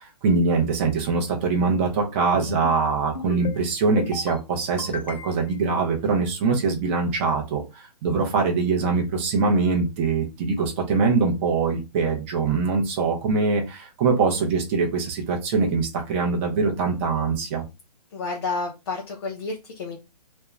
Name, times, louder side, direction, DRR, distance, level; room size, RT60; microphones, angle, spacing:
voice 1, 0.0-17.6, right 4 dB, 20° right, 1 dB, 0.5 m, -23 dB
sound 1, 2.3-2.8 3.1-3.6 4.0-4.4 4.8-5.6, left 6 dB, 90° left, 0.7 m, -36 dB
voice 2, 18.1-20.0, left 3 dB, 40° left, 0 dB, 0.5 m, -30 dB
2.5 x 2.1 x 2.9 m, 0.25 s
hypercardioid pair, 155°, 21 cm